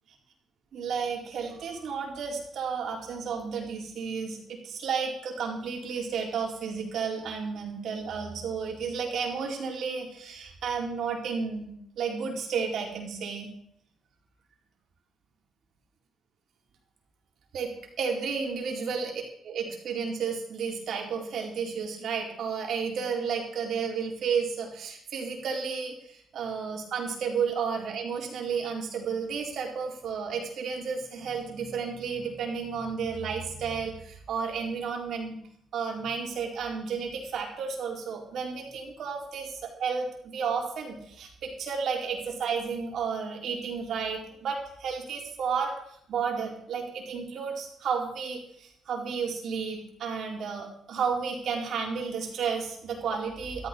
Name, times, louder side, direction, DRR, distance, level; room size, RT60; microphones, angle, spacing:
voice 1, 0.7-13.5 17.5-17.7 18.0-19.1 19.4-35.4 35.7-45.7 46.1-53.7, right 6 dB, 65° right, 0 dB, 4.3 m, -32 dB
13.5 x 13.0 x 5.4 m, 0.70 s
cardioid pair, 90°, 0 cm